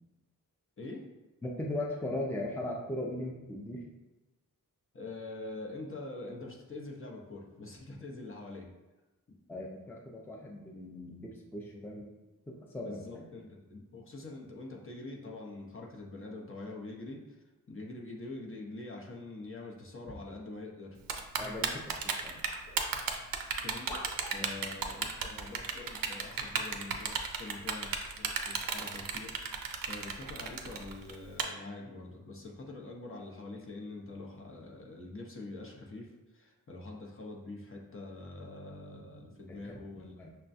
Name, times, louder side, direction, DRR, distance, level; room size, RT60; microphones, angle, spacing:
voice 1, 1.4-3.8 9.5-12.1 12.5-13.2 21.4-22.4 39.7-40.3, left 1 dB, 5° left, -2 dB, 0.5 m, -39 dB
voice 2, 4.9-8.7 11.7-11.8 12.8-21.0 23.6-24.0 24.3-29.4 29.9-40.3, left 2 dB, 40° left, -1 dB, 0.7 m, -45 dB
Typing, 21.1-31.4, right 6 dB, 75° right, 0.5 m, -33 dB
sound 1, 21.4-21.6 22.5-22.9 23.9-24.4 25.5-25.6 26.4-26.6, equal, 85° left, 1.0 m, -46 dB
5.7 x 2.2 x 2.6 m, 1.1 s
cardioid pair, 60°, 34 cm